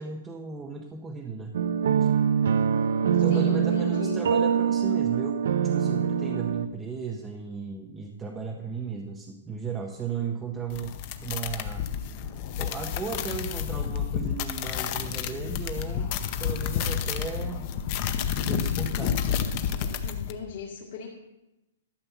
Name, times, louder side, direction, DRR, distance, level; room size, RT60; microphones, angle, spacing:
voice 1, 0.0-1.6 3.0-11.9 12.6-17.7 18.5-19.2, right 5 dB, 10° right, 1 dB, 0.6 m, -36 dB
sound 1, 1.5-6.7, right 7 dB, 65° right, 0.5 m, -24 dB
voice 2, 3.3-4.2 20.0-21.1, left 6 dB, 50° left, -5 dB, 1.9 m, -36 dB
sound 2, 10.7-20.3, left 8 dB, 30° left, 0.6 m, -30 dB
12.5 x 5.8 x 7.0 m, 0.96 s
hypercardioid pair, 170°, 0 cm